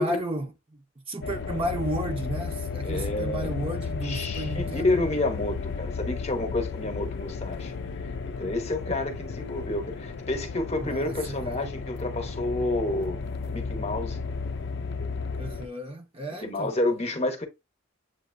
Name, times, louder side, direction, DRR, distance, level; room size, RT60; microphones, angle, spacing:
voice 1, 0.0-4.9 10.8-11.6 15.4-16.8, right 1 dB, 25° right, 0.8 m, -33 dB
sound 1, 1.2-15.7, left 4 dB, 60° left, 0.5 m, -34 dB
voice 2, 2.8-3.5 4.0-7.7 8.4-13.2 13.5-14.2 16.4-17.5, left 2 dB, 35° left, 1.0 m, -29 dB
7.6 x 2.7 x 2.6 m
head